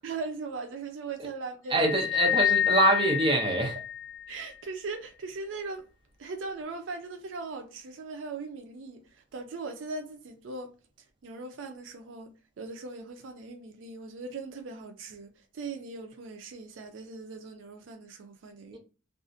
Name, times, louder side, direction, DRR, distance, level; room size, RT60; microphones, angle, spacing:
voice 1, 0.0-1.8 2.8-2.9 4.3-5.9 6.2-10.7 11.0-18.8, right 3 dB, 75° right, 0.4 m, -39 dB
voice 2, 1.7-3.8 18.7-18.8, right 2 dB, 25° right, 0.6 m, -25 dB
sound 1, 1.8-4.4, left 11 dB, 75° left, 0.4 m, -28 dB
2.4 x 2.0 x 2.5 m
head